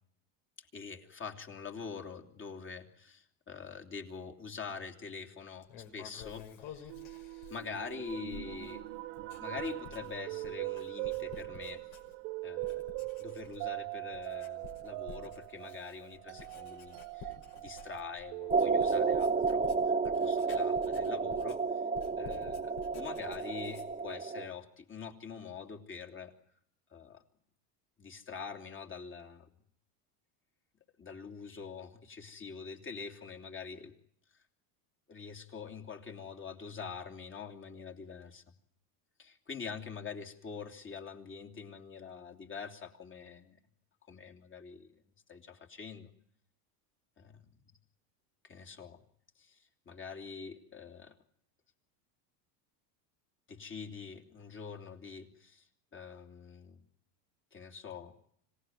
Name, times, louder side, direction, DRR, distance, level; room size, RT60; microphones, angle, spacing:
voice 1, 0.7-6.9 7.5-8.8 9.4-11.8 12.4-21.6 22.2-26.3 26.9-27.2 28.0-29.5 31.0-33.9 35.1-38.4 39.2-43.6 44.1-44.9 45.3-46.1 47.2-47.4 48.4-49.0 49.4-49.6 49.8-51.1 53.5-55.6 55.9-56.8 57.5-58.1, left 5 dB, 25° left, 5 dB, 3.1 m, -45 dB
Writing, 5.6-12.3 12.6-13.8 14.1-24.1, left 7 dB, 65° left, 5.5 m, -52 dB
sound 1, 6.9-19.2, right 22 dB, 75° right, 1.4 m, -41 dB
sound 2, 18.5-24.5, right 4 dB, 15° right, 1.3 m, -31 dB
26.5 x 17.5 x 9.4 m, 0.68 s
supercardioid pair, 125°, 46 cm